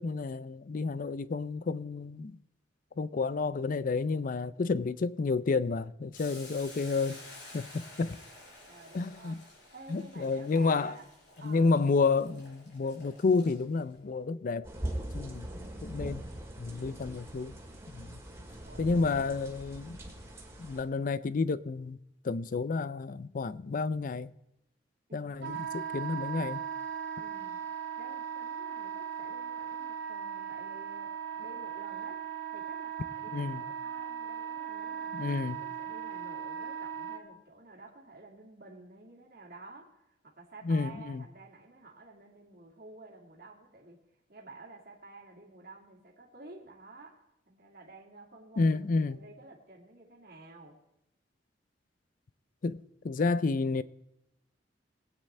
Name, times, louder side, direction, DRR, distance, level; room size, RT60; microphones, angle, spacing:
voice 1, 0.0-2.4 3.0-7.2 7.5-8.2 8.9-9.4 9.9-11.0 11.4-14.7 15.1-15.5 15.8-16.2 16.6-17.5 17.9-18.2 18.8-20.0 20.6-22.0 22.2-24.3 25.1-26.6 33.3-33.6 35.1-35.6 40.6-41.2 48.6-49.2 52.6-53.8, left 4 dB, 50° left, 0.4 m, -30 dB
Boiling, 6.1-13.9, left 2 dB, 85° left, 5.5 m, -51 dB
voice 2, 8.7-9.4 9.7-11.1 11.4-11.8 15.4-16.1 18.7-19.2 25.1-25.3 27.2-27.6 28.0-32.2 32.5-44.0 44.3-50.8, right 3 dB, 55° right, 2.2 m, -51 dB
sound 1, 14.6-20.8, right 1 dB, 15° right, 2.0 m, -41 dB
Wind instrument woodwind instrument, 25.4-37.2, right 8 dB, 85° right, 1.3 m, -38 dB
20.5 x 8.9 x 3.3 m
head